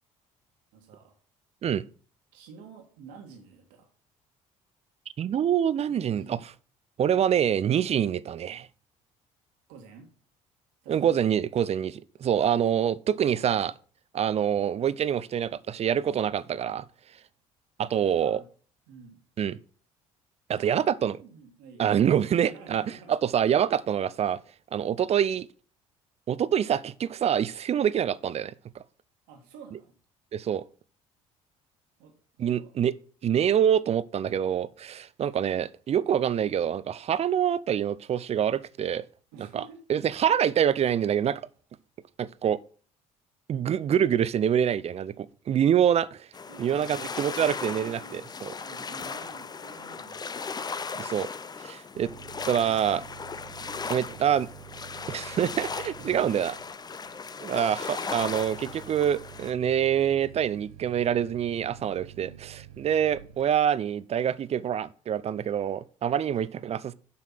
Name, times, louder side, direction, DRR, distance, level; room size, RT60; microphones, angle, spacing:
voice 1, 0.7-1.2 2.3-3.9 5.9-6.4 9.7-10.1 10.8-11.2 13.2-13.6 18.0-18.5 18.9-19.2 20.5-20.8 21.2-21.9 22.4-23.3 29.3-29.9 32.0-32.8 39.3-39.8 46.5-48.3 48.6-50.4 52.1-52.4 53.8-54.9 56.0-56.2 62.1-62.5 66.2-66.8, right 5 dB, 70° right, 1.7 m, -50 dB
voice 2, 5.2-6.4 7.0-8.7 10.9-13.7 14.1-16.8 17.8-18.4 19.4-19.6 20.5-21.2 21.8-22.8 23.1-24.4 24.7-25.5 26.3-28.5 30.3-30.6 32.4-32.9 33.2-39.0 39.5-39.6 39.9-41.4 42.2-42.6 43.5-46.3 46.6-48.5 51.0-51.3 51.6-52.1 52.5-53.0 53.9-54.5 55.1-56.6 57.4-66.9, right 9 dB, 35° right, 0.5 m, -26 dB
sound 1, 46.3-59.5, left 5 dB, 25° left, 0.6 m, -37 dB
sound 2, 51.9-63.6, right 11 dB, 85° right, 0.6 m, -48 dB
7.6 x 5.8 x 5.7 m
hypercardioid pair, 55°, 17 cm